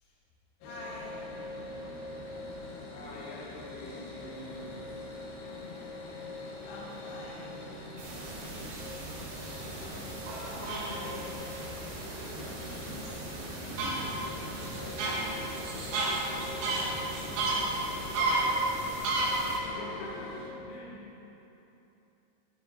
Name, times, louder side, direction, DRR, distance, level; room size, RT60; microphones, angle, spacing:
sound 1, 0.6-20.5, left 2 dB, 70° left, 2.6 m, -43 dB
voice 1, 0.6-1.3 3.9-4.4 6.6-7.5 10.5-11.4 13.3-13.8 16.6-17.1 17.8-18.5, left 1 dB, 55° left, -7 dB, 1.9 m, -46 dB
voice 2, 1.3-2.3 2.9-5.0 9.5-11.2 12.3-12.8 13.4-13.6 13.9-15.2 17.9-18.2 19.4-21.2, left 2 dB, 85° left, -3 dB, 3.4 m, -47 dB
sound 2, 8.0-19.6, right 2 dB, 70° right, 2.1 m, -34 dB
9.2 x 9.0 x 2.8 m, 3.0 s
omnidirectional pair, 5.2 m